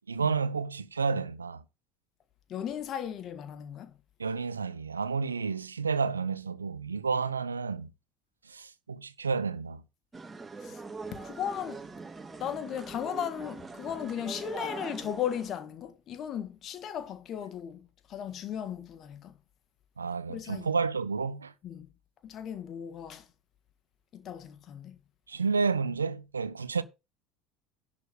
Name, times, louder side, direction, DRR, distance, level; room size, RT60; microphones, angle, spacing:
voice 1, 0.1-1.6 4.2-7.9 8.5-9.8 20.0-21.5 25.3-26.8, right 5 dB, 80° right, 0.7 m, -30 dB
voice 2, 2.5-3.9 10.6-10.8 11.1-11.8 12.4-19.3 20.3-20.7 21.6-21.9 22.2-23.3 24.1-25.0, left 9 dB, 40° left, 1.5 m, -36 dB
sound 1, 10.1-15.5, right 4 dB, 15° right, 2.5 m, -42 dB
11.0 x 4.3 x 6.4 m
figure-of-eight pair, 70°, 0 cm